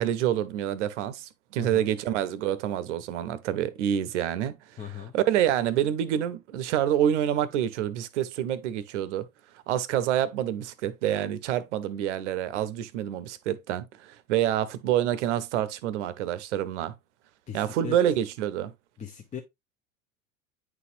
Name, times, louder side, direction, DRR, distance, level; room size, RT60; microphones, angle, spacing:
voice 1, 0.0-4.8 5.1-9.3 9.7-16.9 17.5-18.7, right 11 dB, 55° right, 0.8 m, -27 dB
voice 2, 4.8-5.1 17.5-18.0 19.0-19.4, left 8 dB, 20° left, 0.7 m, -38 dB
9.3 x 4.1 x 2.5 m
figure-of-eight pair, 75°, 41 cm